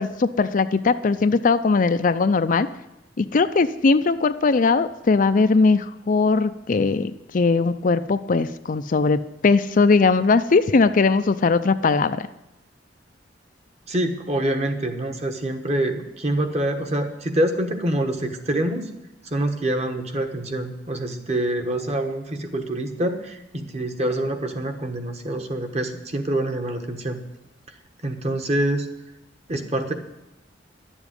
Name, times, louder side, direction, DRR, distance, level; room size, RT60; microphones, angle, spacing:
voice 1, 0.0-2.7 3.2-12.3, left 4 dB, 45° left, 11 dB, 0.5 m, -20 dB
voice 2, 13.9-18.9 19.2-27.2 27.7-27.8 28.0-28.9 29.5-29.9, right 1 dB, 35° right, 6 dB, 1.3 m, -26 dB
11.5 x 7.2 x 9.7 m, 0.92 s
head